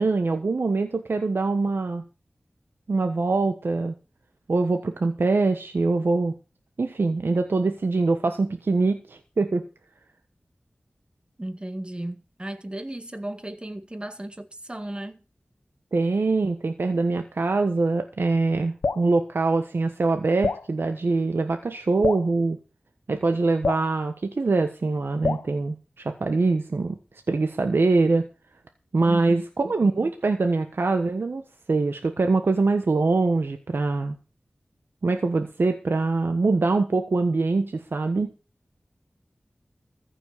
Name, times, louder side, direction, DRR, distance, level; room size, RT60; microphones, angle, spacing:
voice 1, 0.0-2.0 2.9-3.9 4.5-6.3 6.8-9.6 15.9-22.6 23.1-27.0 27.3-28.2 28.9-31.4 31.7-34.2 35.0-38.3, right 3 dB, 75° right, 1.3 m, -23 dB
voice 2, 11.4-15.2 29.1-29.4, right 1 dB, 25° right, 1.9 m, -35 dB
Drip, 18.8-19.1 20.4-20.7 22.0-22.3 23.6-23.9 25.2-25.5, left 4 dB, 85° left, 0.9 m, -26 dB
15.0 x 6.0 x 8.4 m
wide cardioid pair, 50°, 4 cm